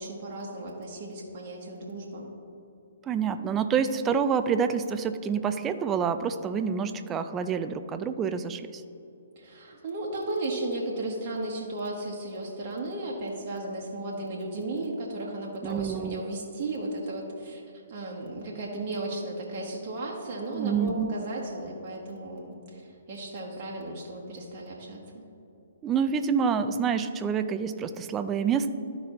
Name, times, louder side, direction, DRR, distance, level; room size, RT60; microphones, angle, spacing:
voice 1, 0.0-2.3 9.4-17.6 17.9-25.2, right 2 dB, 45° right, -3 dB, 1.3 m, -35 dB
voice 2, 3.1-8.8 15.6-16.2 20.5-21.1 25.8-28.7, right 6 dB, 20° right, 10 dB, 0.4 m, -27 dB
12.5 x 5.2 x 3.0 m, 2.9 s
figure-of-eight pair, 125°, 0 cm